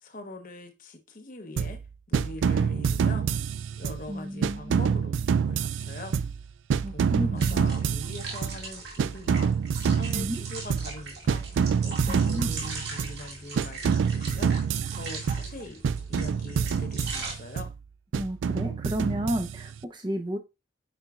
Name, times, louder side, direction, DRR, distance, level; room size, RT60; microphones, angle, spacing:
voice 1, 0.0-1.8 2.1-3.3 3.8-6.2 6.9-9.5 9.9-11.4 11.8-14.5 14.9-15.8 16.1-17.7, left 2 dB, 45° left, 0.9 m, -42 dB
sound 1, 1.6-1.9 2.1-4.1 4.4-6.5 6.7-8.7 9.0-11.0 11.3-13.2 13.6-15.6 15.8-17.7 18.1-19.8, right 6 dB, 90° right, 0.3 m, -27 dB
voice 2, 4.1-5.0 6.8-7.7 10.1-10.4 12.1-12.5 18.1-20.4, equal, 25° right, 0.8 m, -32 dB
sound 2, 7.4-17.3, right 3 dB, 60° right, 2.2 m, -40 dB
9.3 x 4.4 x 2.4 m
head